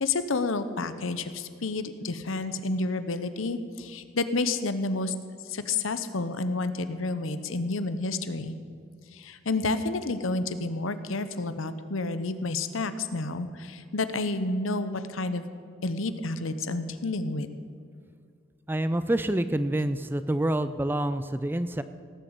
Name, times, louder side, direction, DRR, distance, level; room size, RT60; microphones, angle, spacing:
voice 1, 0.0-5.1 5.5-8.5 9.1-15.5 15.8-17.5, left 3 dB, 80° left, 11 dB, 0.8 m, -30 dB
voice 2, 18.7-21.8, right 1 dB, 10° right, 12 dB, 0.4 m, -27 dB
17.5 x 7.0 x 8.2 m, 2.3 s
head